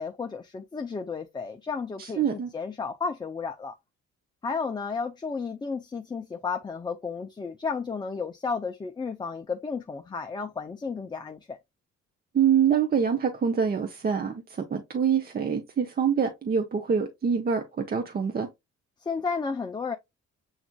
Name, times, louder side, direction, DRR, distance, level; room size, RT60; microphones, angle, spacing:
voice 1, 0.0-3.7 4.4-11.6 19.0-19.9, left 5 dB, 15° left, 0.4 m, -33 dB
voice 2, 2.0-2.5 12.3-18.5, right 7 dB, 30° right, 0.6 m, -25 dB
7.1 x 2.4 x 2.2 m
cardioid pair, 90°, 30 cm